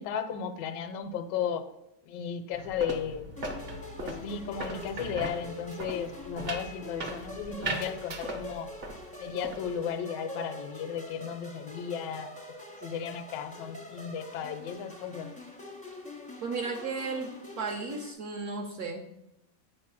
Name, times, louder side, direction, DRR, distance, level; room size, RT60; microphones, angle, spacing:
voice 1, 0.0-1.6 2.0-3.3 4.0-8.7 9.2-12.3 12.8-15.3, left 7 dB, 80° left, 9 dB, 1.2 m, -35 dB
sound 1, 2.5-9.0 9.3-9.8, right 2 dB, 45° right, 0.8 m, -39 dB
sound 2, 3.4-18.1, left 1 dB, 10° left, 0.5 m, -45 dB
voice 2, 16.4-17.3 17.6-19.1, right 4 dB, 65° right, 1 dB, 1.1 m, -34 dB
8.0 x 3.1 x 5.8 m, 0.84 s
omnidirectional pair, 1.9 m